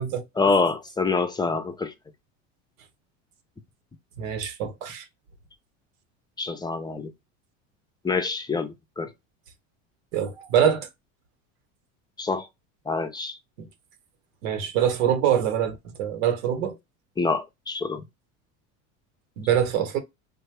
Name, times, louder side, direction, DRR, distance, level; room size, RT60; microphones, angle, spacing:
voice 1, 0.4-1.9 6.4-7.1 8.0-9.1 12.2-12.5 12.9-13.4 17.2-18.0, left 4 dB, 10° left, 0.5 m, -26 dB
voice 2, 4.2-5.0 10.1-10.9 14.4-16.8 19.4-20.0, right 9 dB, 90° right, 1.0 m, -24 dB
3.4 x 2.2 x 3.3 m
supercardioid pair, 110°, 39 cm